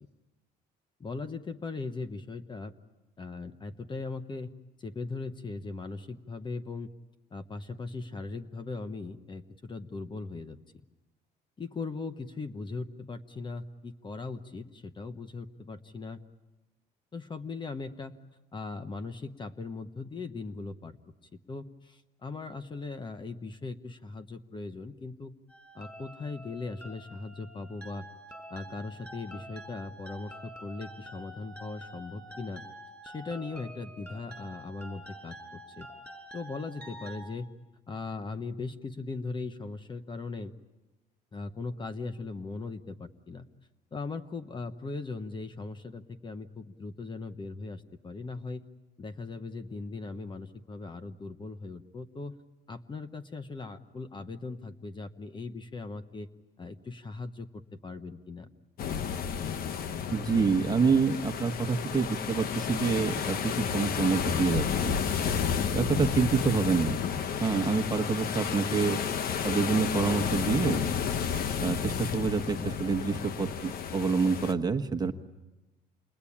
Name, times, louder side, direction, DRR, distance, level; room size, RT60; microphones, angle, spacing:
voice 1, 1.0-2.7 3.2-4.5 4.8-6.9 7.3-10.6 11.6-16.2 17.1-18.2 18.5-21.0 21.5-25.4 25.7-28.1 28.5-32.6 33.0-35.9 36.3-37.5 37.9-40.5 41.3-43.5 43.9-48.7 49.0-52.4 52.7-56.3 56.6-58.5, left 3 dB, 30° left, 10 dB, 1.2 m, -39 dB
sound 1, 25.5-37.2, right 1 dB, 10° left, 5.9 m, -47 dB
sound 2, 58.8-74.5, left 7 dB, 60° left, 1.1 m, -31 dB
voice 2, 60.1-65.0 65.7-67.0 67.4-69.0 69.4-70.8 71.6-75.1, right 5 dB, 25° right, 7 dB, 1.3 m, -27 dB
28.5 x 21.5 x 8.7 m, 1.1 s
cardioid pair, 110°, 17 cm